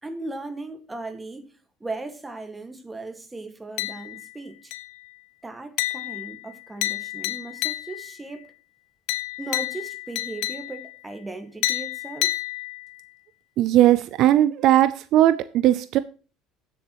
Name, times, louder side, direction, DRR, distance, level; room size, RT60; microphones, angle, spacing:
voice 1, 0.0-4.7 5.4-8.5 9.4-12.4, right 2 dB, 15° right, 1.7 m, -37 dB
sound 1, 3.8-4.3 4.7-5.1 5.8-8.2 9.1-11.0 11.6-13.1, left 17 dB, 75° left, 0.8 m, -30 dB
voice 2, 13.6-16.0, right 13 dB, 60° right, 0.5 m, -18 dB
16.0 x 7.1 x 3.0 m
supercardioid pair, 100°, 0 cm